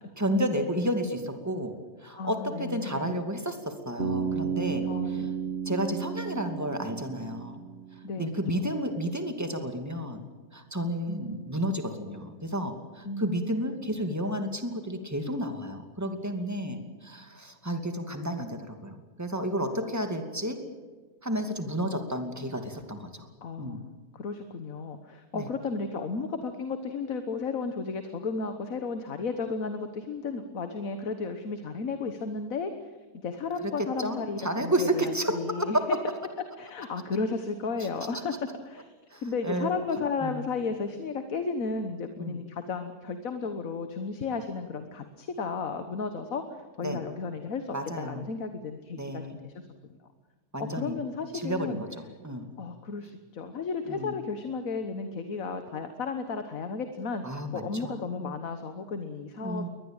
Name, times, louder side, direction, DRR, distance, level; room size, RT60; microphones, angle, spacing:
voice 1, 0.2-1.7 2.0-5.2 5.7-7.6 8.2-10.2 10.5-20.6 21.2-23.3 23.6-23.8 25.3-25.5 34.0-35.7 39.1-39.7 40.2-40.4 42.2-42.4 46.8-47.0 47.7-48.2 49.0-49.4 50.5-50.9 51.3-51.8 52.2-52.5 53.9-54.1 57.2-58.3 59.4-59.7, equal, 10° right, 6 dB, 2.4 m, -31 dB
voice 2, 2.1-3.2 4.8-5.3 8.0-8.3 11.1-11.7 13.0-13.8 16.7-17.0 19.7-19.9 23.4-32.9 33.2-36.0 36.6-38.9 39.2-46.4 46.8-49.7 50.6-51.8 52.6-59.7, left 4 dB, 60° left, 8 dB, 1.7 m, -34 dB
Bass guitar, 4.0-8.1, right 6 dB, 40° right, 2.1 m, -33 dB
23.0 x 19.5 x 9.0 m, 1.4 s
omnidirectional pair, 1.7 m